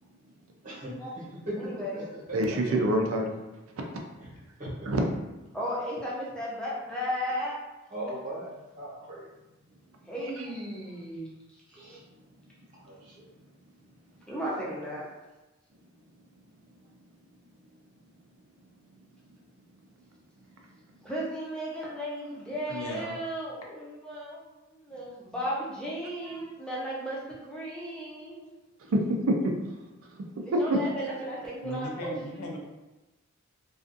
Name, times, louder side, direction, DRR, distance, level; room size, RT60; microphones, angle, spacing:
voice 1, 0.6-2.0 2.3-2.6 4.6-4.7 7.9-8.5 8.8-9.3 11.7-12.0 12.9-13.0, right 1 dB, 35° right, -7 dB, 0.9 m, -38 dB
voice 2, 1.6-2.1 5.5-7.6 10.1-11.3 14.3-15.0 21.0-24.4 24.8-28.5 30.6-32.5, equal, 5° left, -6 dB, 0.5 m, -35 dB
voice 3, 2.3-3.4 4.8-5.0 26.3-26.4 28.9-29.5 30.5-30.8, right 1 dB, 70° right, 2 dB, 0.4 m, -25 dB
voice 4, 22.7-23.2 31.6-32.6, left 1 dB, 85° left, 0 dB, 0.5 m, -36 dB
2.4 x 2.4 x 2.5 m, 1.0 s
head